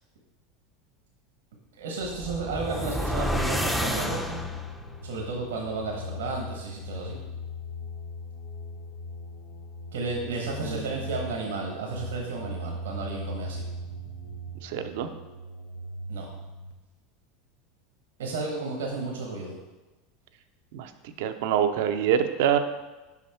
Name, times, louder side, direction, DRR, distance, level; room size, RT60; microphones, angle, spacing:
voice 1, 1.8-4.4 5.0-7.2 9.9-13.6 16.1-16.3 18.2-19.5, right 3 dB, 90° right, 0 dB, 1.2 m, -33 dB
sound 1, 2.0-4.8, equal, ahead, 0.6 m, -30 dB
sound 2, 3.3-16.7, left 1 dB, 80° left, 0.8 m, -39 dB
voice 2, 10.6-11.0 14.6-15.1 20.7-20.9 21.2-22.6, right 9 dB, 70° right, 9 dB, 0.6 m, -25 dB
5.7 x 5.3 x 4.4 m, 1.1 s
hypercardioid pair, 100°, 0 cm